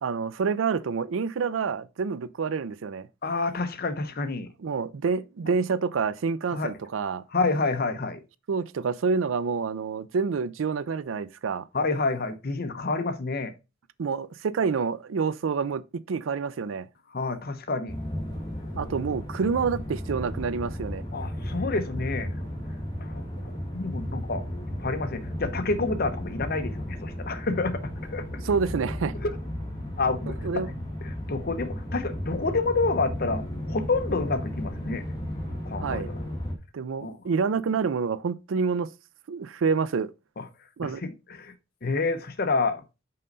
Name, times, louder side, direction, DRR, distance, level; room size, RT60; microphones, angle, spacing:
voice 1, 0.0-3.1 4.6-7.2 8.5-11.7 14.0-16.9 18.8-21.0 28.4-29.1 30.3-30.7 35.8-36.1 36.7-38.9 39.3-40.1 40.8-41.0, right 5 dB, 80° right, 0.4 m, -28 dB
voice 2, 3.2-4.5 6.5-6.7 7.3-8.2 11.7-13.5 17.1-17.9 21.1-22.3 23.0-24.4 24.8-28.4 29.2-29.3 30.0-30.6 31.0-35.0 35.7-36.2 37.0-37.2 40.4-40.5 40.8-41.5 41.8-42.8, left 3 dB, 50° left, 0.8 m, -28 dB
sound 1, 17.9-36.5, left 1 dB, 20° left, 1.6 m, -34 dB
5.6 x 5.2 x 3.9 m
head